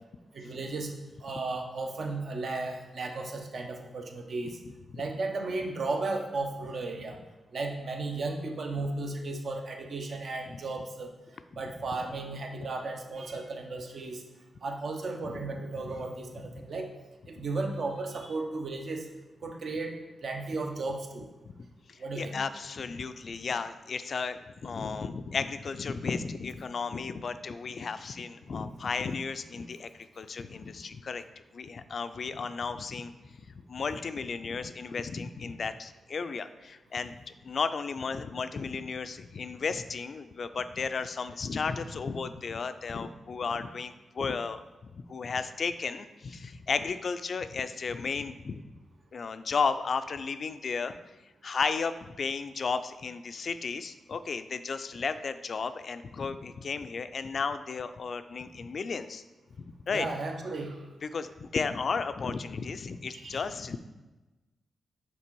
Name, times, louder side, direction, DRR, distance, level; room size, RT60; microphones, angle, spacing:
voice 1, 0.3-0.9 1.2-4.6 5.0-7.2 7.5-11.1 11.5-14.2 14.6-16.9 17.3-19.1 19.4-20.0 20.2-21.3 22.0-22.4 59.9-60.8 63.1-63.4, right 3 dB, 65° right, 3 dB, 0.8 m, -35 dB
voice 2, 15.3-16.0 16.6-16.7 17.4-17.5 21.5-29.9 30.2-31.2 31.5-37.2 37.4-48.6 49.1-50.9 51.4-59.2 59.6-60.1 61.0-63.8, left 5 dB, 55° left, 11 dB, 0.3 m, -34 dB
5.9 x 3.8 x 4.5 m, 1.1 s
cardioid pair, 80°, 0 cm